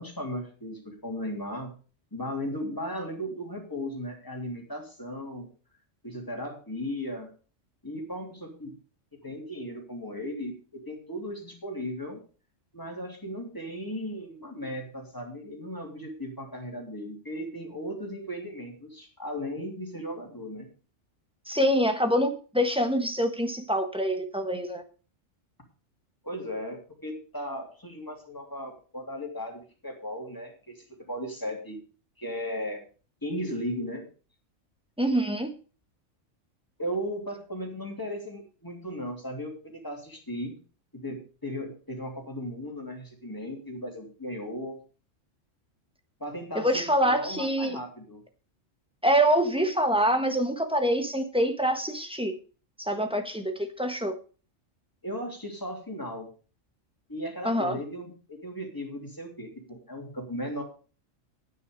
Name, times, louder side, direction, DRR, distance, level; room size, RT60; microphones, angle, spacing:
voice 1, 0.0-1.7 2.1-5.5 6.0-7.3 7.8-8.7 9.2-12.2 12.7-20.7 26.2-31.8 32.2-32.8 33.2-34.0 36.8-40.5 40.9-44.8 46.2-48.2 55.0-56.3 57.1-60.6, equal, 15° left, 1 dB, 3.1 m, -36 dB
voice 2, 21.5-24.8 35.0-35.5 46.5-47.8 49.0-52.3 52.8-54.1 57.4-57.8, equal, 5° right, 5 dB, 1.3 m, -25 dB
9.9 x 9.5 x 5.2 m, 0.37 s
omnidirectional pair, 1.3 m